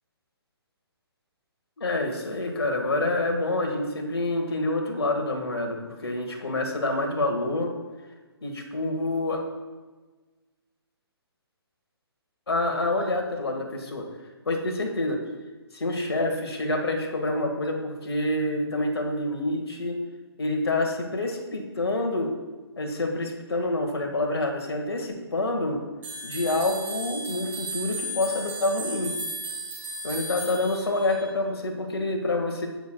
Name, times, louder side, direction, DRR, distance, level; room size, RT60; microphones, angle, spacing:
voice 1, 1.8-7.7 8.4-9.4 12.5-14.1 14.4-15.2 15.7-20.0 20.4-22.3 22.8-25.8 26.2-29.1 30.0-32.7, left 2 dB, 70° left, 3 dB, 1.8 m, -27 dB
sound 1, 26.0-31.3, right 1 dB, 15° right, 2.7 m, -35 dB
17.0 x 6.5 x 2.3 m, 1.3 s
figure-of-eight pair, 140°, 14 cm